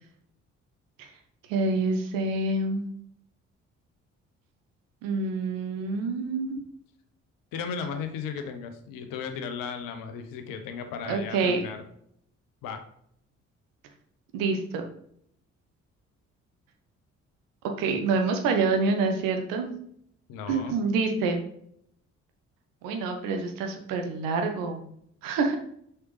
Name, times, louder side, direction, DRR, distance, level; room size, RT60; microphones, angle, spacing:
voice 1, 1.5-2.9 5.0-6.6 11.1-11.6 14.3-14.8 17.8-19.7 20.5-21.4 22.8-24.8 25.2-25.5, right 3 dB, 65° right, 4 dB, 1.1 m, -27 dB
voice 2, 7.5-11.8 12.6-12.8 20.3-20.8, left 6 dB, 60° left, 6 dB, 1.0 m, -35 dB
6.5 x 5.7 x 3.2 m, 0.69 s
figure-of-eight pair, 40°, 38 cm